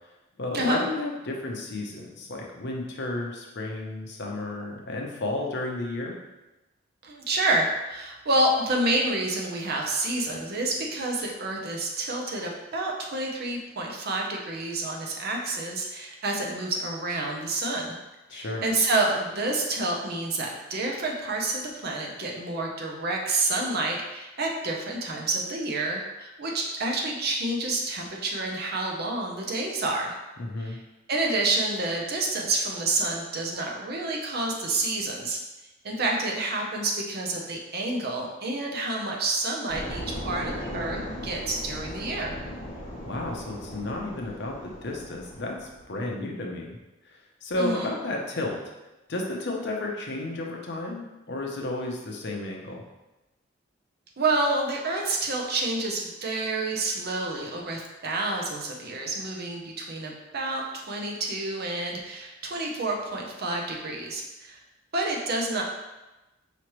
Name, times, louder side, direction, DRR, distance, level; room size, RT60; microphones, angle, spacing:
voice 1, 0.4-6.1 18.3-18.6 30.4-30.8 43.1-46.8 47.0-48.6 49.1-52.8, left 2 dB, 60° left, 0 dB, 0.7 m, -32 dB
voice 2, 7.0-18.0 18.3-30.2 30.6-30.8 31.1-35.4 35.8-42.3 47.6-47.9 54.2-64.6 64.9-65.6, right 2 dB, 50° right, 0 dB, 0.7 m, -28 dB
sound 1, 39.7-46.0, equal, 40° left, 1.0 m, -38 dB
5.0 x 3.1 x 3.0 m, 1.0 s
head